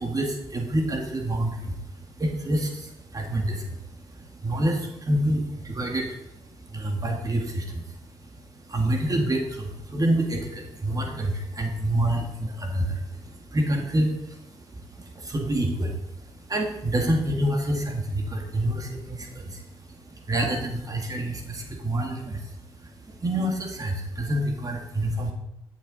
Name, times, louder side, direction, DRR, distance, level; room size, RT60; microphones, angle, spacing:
voice 1, 0.0-25.3, right 1 dB, 35° right, 2 dB, 2.0 m, -28 dB
11.5 x 7.0 x 4.1 m, 0.87 s
supercardioid pair, 60°, 11 cm